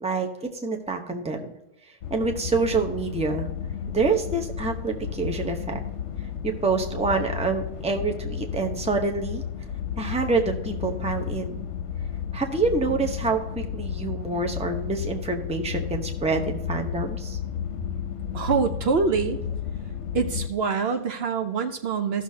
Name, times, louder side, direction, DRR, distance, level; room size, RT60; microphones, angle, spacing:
voice 1, 0.0-1.5 2.1-3.5 3.9-5.8 6.4-9.4 10.0-11.6 12.3-17.4, right 4 dB, 5° right, 4 dB, 0.7 m, -27 dB
sound 1, 2.0-20.5, left 8 dB, 75° left, 1.0 m, -33 dB
voice 2, 18.3-19.4 20.1-22.2, right 5 dB, 65° right, 7 dB, 0.9 m, -25 dB
14.5 x 6.4 x 2.8 m, 0.90 s
omnidirectional pair, 1.2 m